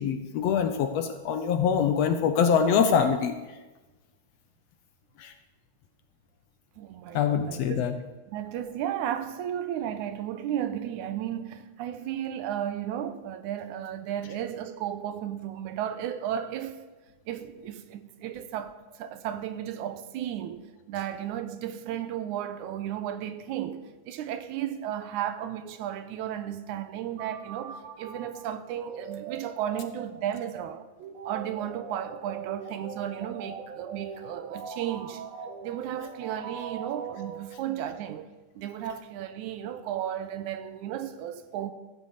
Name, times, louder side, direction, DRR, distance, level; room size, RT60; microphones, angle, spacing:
voice 1, 0.0-3.3 5.2-5.3 7.1-7.9, left 7 dB, 70° left, 1.6 m, -24 dB
voice 2, 6.8-16.8 17.3-30.9 31.3-35.2 35.6-38.3 38.6-41.7, right 10 dB, 85° right, 2.2 m, -34 dB
sound 1, 27.2-37.9, right 6 dB, 65° right, 2.1 m, -41 dB
14.5 x 8.0 x 7.1 m
omnidirectional pair, 3.5 m